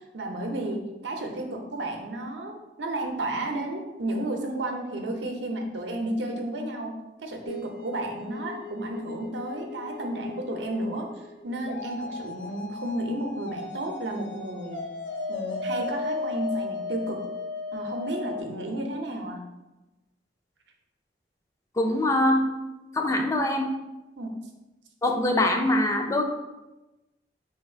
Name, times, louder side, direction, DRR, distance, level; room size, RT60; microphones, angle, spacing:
voice 1, 0.1-6.9 7.2-11.1 11.4-14.8 15.3-17.2 17.7-19.4 24.2-24.4, right 1 dB, 85° right, 2 dB, 0.6 m, -32 dB
sound 1, 7.4-18.4, left 3 dB, 80° left, 0.5 m, -36 dB
voice 2, 21.8-22.4 22.9-23.7 25.0-26.2, left 1 dB, 15° left, 3 dB, 0.4 m, -23 dB
3.4 x 2.3 x 4.3 m, 1.0 s
head